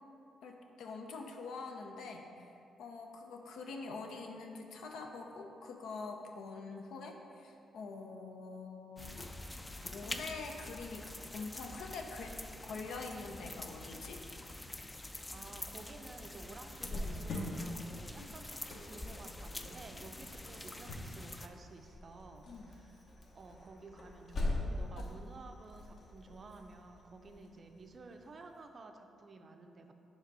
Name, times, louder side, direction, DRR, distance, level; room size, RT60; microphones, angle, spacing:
voice 1, 0.4-2.5 2.8-9.2 9.8-12.3 12.6-14.2 18.2-18.3 22.5-22.7, left 4 dB, 80° left, 2 dB, 0.6 m, -45 dB
sound 1, 9.0-21.5, left 1 dB, 15° left, 0.4 m, -46 dB
voice 2, 15.3-29.9, right 3 dB, 45° right, 5 dB, 0.5 m, -53 dB
Cricket, 16.8-28.2, left 1 dB, 60° left, 1.0 m, -43 dB
5.1 x 3.5 x 5.4 m, 2.7 s
cardioid pair, 75°, 0 cm